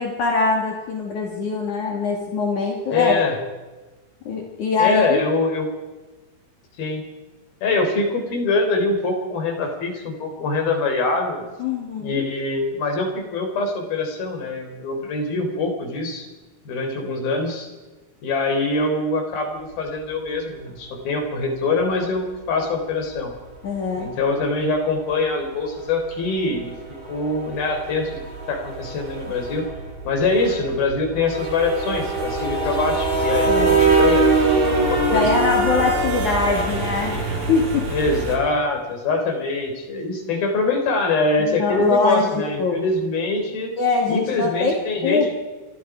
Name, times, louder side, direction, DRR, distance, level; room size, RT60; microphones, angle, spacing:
voice 1, 0.0-3.2 4.3-5.2 11.6-12.2 23.6-24.1 33.5-33.9 35.1-37.2 37.5-37.9 41.4-42.3 42.6-42.8 43.8-44.8 45.0-45.3, left 4 dB, 55° left, 0 dB, 4.0 m, -22 dB
voice 2, 2.9-3.4 4.8-5.7 6.8-7.0 7.6-11.5 12.0-16.3 16.7-17.7 18.2-23.3 24.0-26.7 27.1-29.6 30.1-34.4 34.7-35.3 37.9-43.7 44.1-45.3, left 3 dB, 85° left, 4 dB, 5.8 m, -24 dB
sound 1, 21.9-22.0 23.7-23.9 24.2-24.3 24.6-24.8 25.1-25.2 25.5-38.4, right 3 dB, 85° right, 8.1 m, -23 dB
28.0 x 23.0 x 5.0 m, 1.2 s
omnidirectional pair, 4.2 m